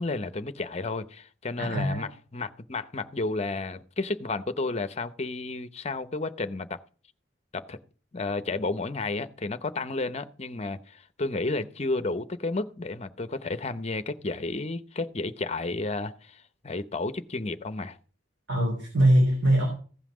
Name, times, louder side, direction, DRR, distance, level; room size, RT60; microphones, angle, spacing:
voice 1, 0.0-6.8 7.5-7.8 8.1-18.0, left 3 dB, 35° left, 12 dB, 0.7 m, -32 dB
voice 2, 1.6-2.1 18.5-19.7, right 1 dB, 70° right, 0 dB, 3.3 m, -22 dB
15.5 x 5.7 x 6.2 m, 0.41 s
head